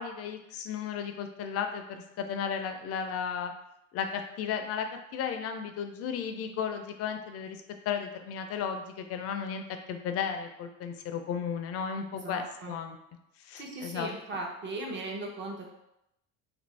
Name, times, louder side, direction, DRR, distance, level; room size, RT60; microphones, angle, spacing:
voice 1, 0.0-3.5 3.9-4.9 5.1-9.6 9.9-13.0 13.4-14.1, left 7 dB, 50° left, 6 dB, 0.5 m, -34 dB
voice 2, 12.1-12.7 13.6-15.7, right 2 dB, 35° right, 0 dB, 0.7 m, -38 dB
2.8 x 2.6 x 3.2 m, 0.83 s
cardioid pair, 110°, 32 cm